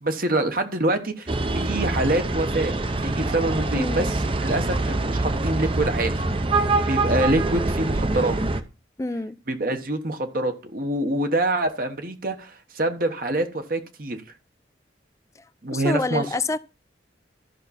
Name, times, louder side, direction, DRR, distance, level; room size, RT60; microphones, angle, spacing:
voice 1, 0.0-2.7 3.0-6.1 6.9-8.4 9.5-14.2 15.6-16.2, right 1 dB, 50° right, 1.2 m, -25 dB
sound 1, 1.3-8.6, right 2 dB, 30° right, 0.7 m, -24 dB
voice 2, 3.7-4.1 9.0-9.4 15.7-16.6, left 2 dB, 15° left, 0.4 m, -27 dB
13.5 x 5.8 x 4.2 m
head